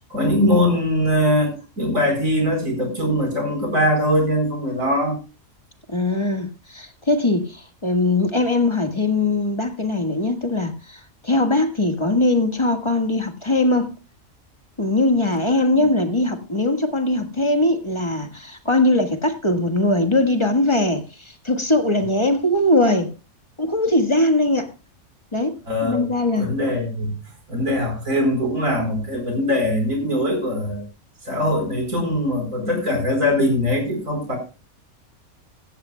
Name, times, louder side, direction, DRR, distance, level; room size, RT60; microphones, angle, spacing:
voice 1, 0.1-5.2 15.8-15.9 25.7-26.1 26.4-27.1 27.5-30.8 31.2-34.4, left 1 dB, 70° right, 4.9 m, -21 dB
voice 2, 5.9-14.0 14.8-23.1 23.6-24.7 25.3-26.5, left 2 dB, 20° left, 1.6 m, -21 dB
16.0 x 15.0 x 2.2 m
omnidirectional pair, 1.5 m